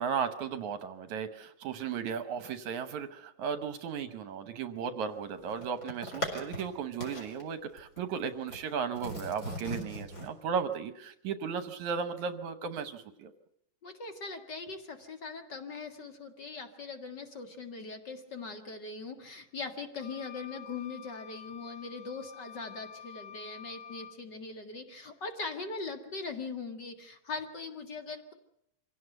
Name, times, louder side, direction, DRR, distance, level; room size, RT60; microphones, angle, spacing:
voice 1, 0.0-13.3, right 6 dB, 70° right, 10 dB, 2.1 m, -35 dB
sound 1, 5.1-6.7 7.0-7.4 7.8-8.6 9.0-10.3, equal, 25° left, 4.5 m, -39 dB
voice 2, 13.8-28.3, left 4 dB, 40° left, 6 dB, 1.9 m, -41 dB
sound 2, 20.0-24.2, left 8 dB, 75° left, 2.5 m, -48 dB
25.5 x 17.0 x 7.9 m, 0.76 s
omnidirectional pair, 3.9 m